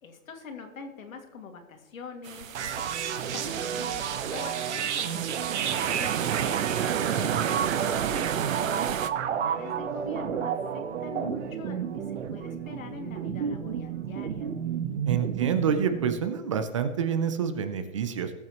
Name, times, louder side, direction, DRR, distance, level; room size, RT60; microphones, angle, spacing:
voice 1, 0.0-6.1 6.4-14.5, left 5 dB, 75° left, 5 dB, 2.3 m, -44 dB
sound 1, 2.2-9.1, right 9 dB, 70° right, 0.9 m, -31 dB
sound 2, 2.5-16.2, right 8 dB, 55° right, 1.2 m, -31 dB
voice 2, 7.0-7.4 15.1-18.3, right 7 dB, 25° right, 10 dB, 0.5 m, -28 dB
20.0 x 7.5 x 3.0 m, 1.4 s
hypercardioid pair, 160°, 41 cm